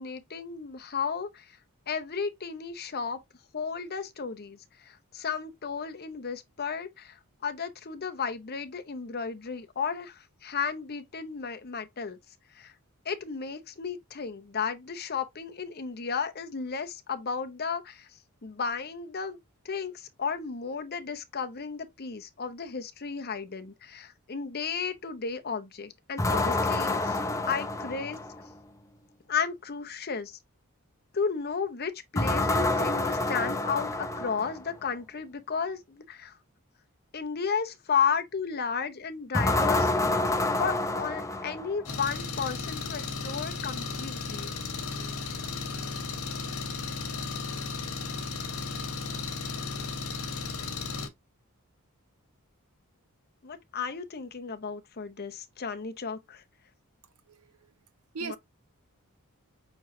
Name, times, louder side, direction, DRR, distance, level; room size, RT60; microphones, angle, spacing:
voice 1, 0.0-1.6 1.9-3.2 3.5-4.6 4.9-12.2 12.5-12.7 13.0-18.1 18.4-19.4 19.6-27.2 27.5-28.2 29.3-30.4 31.1-36.4 37.1-39.9 40.3-44.5 53.4-56.4 58.2-58.4, left 6 dB, 45° left, 0.7 m, -33 dB
sound 1, 26.2-28.5 32.1-34.7 39.3-42.0, left 2 dB, 15° left, 0.5 m, -28 dB
Engine, 41.9-51.1, left 4 dB, 75° left, 1.4 m, -35 dB
voice 2, 57.3-57.7 58.1-58.4, right 4 dB, 80° right, 0.8 m, -39 dB
6.2 x 3.2 x 2.7 m
head